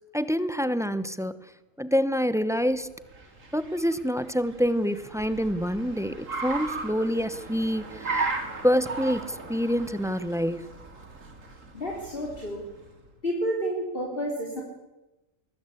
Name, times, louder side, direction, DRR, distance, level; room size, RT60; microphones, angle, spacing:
voice 1, 0.1-1.4 1.8-2.9 3.5-8.3 8.6-10.7, equal, 5° right, 14 dB, 0.6 m, -26 dB
Car, 2.7-13.0, right 3 dB, 65° right, 2.9 m, -37 dB
voice 2, 11.7-12.6 13.2-14.6, equal, 40° left, -2 dB, 3.9 m, -30 dB
22.0 x 21.0 x 8.4 m, 1.0 s
omnidirectional pair, 1.5 m